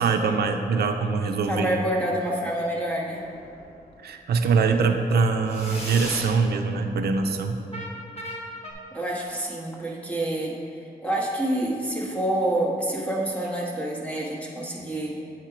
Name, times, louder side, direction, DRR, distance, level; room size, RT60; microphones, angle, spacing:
voice 1, 0.0-1.7 4.0-7.6, right 4 dB, 75° right, 5 dB, 0.5 m, -23 dB
voice 2, 1.4-3.2 8.9-15.2, right 1 dB, 10° left, -4 dB, 1.1 m, -27 dB
sound 1, 3.1-3.7 5.4-6.4 7.7-8.7, equal, 40° left, 1.3 m, -36 dB
8.1 x 4.4 x 4.8 m, 2.6 s
wide cardioid pair, 140°, 17 cm